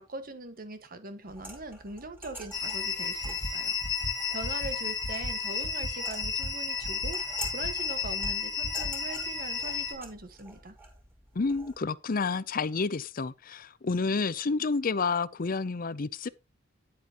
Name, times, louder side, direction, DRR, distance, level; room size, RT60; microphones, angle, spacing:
voice 1, 0.0-3.8 4.3-10.8, right 2 dB, 50° right, 1.5 m, -41 dB
sound 1, 1.3-11.8, right 2 dB, 10° right, 4.2 m, -48 dB
sound 2, 2.5-9.9, left 5 dB, 15° left, 2.4 m, -32 dB
sound 3, 3.2-3.5 3.8-4.1 4.4-4.7 5.0-5.3 5.6-5.9 6.2-6.5 6.8-7.1 7.4-7.7 8.0-8.3 8.6-8.9, equal, 70° left, 1.5 m, -36 dB
voice 2, 11.3-16.3, left 4 dB, 50° left, 0.6 m, -29 dB
10.5 x 8.7 x 3.0 m
head